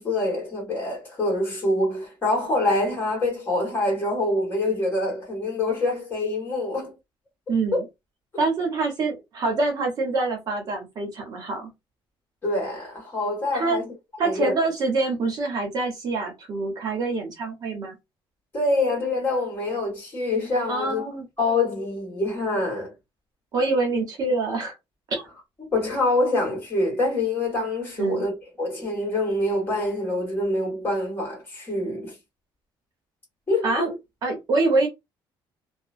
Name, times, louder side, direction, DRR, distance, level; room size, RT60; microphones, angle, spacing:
voice 1, 0.0-6.9 7.7-7.8 12.4-13.9 14.2-14.5 18.5-21.0 21.4-22.9 25.7-28.3 28.6-32.2 33.5-33.9, left 2 dB, 25° left, 1.6 m, -25 dB
voice 2, 7.5-7.8 8.4-11.7 13.5-13.8 14.2-18.0 20.7-21.2 23.5-24.8 25.1-25.2 28.0-28.2 33.6-33.9 34.2-34.9, right 3 dB, 45° right, 0.9 m, -25 dB
2.9 x 2.1 x 2.5 m
cardioid pair, 165°, 9 cm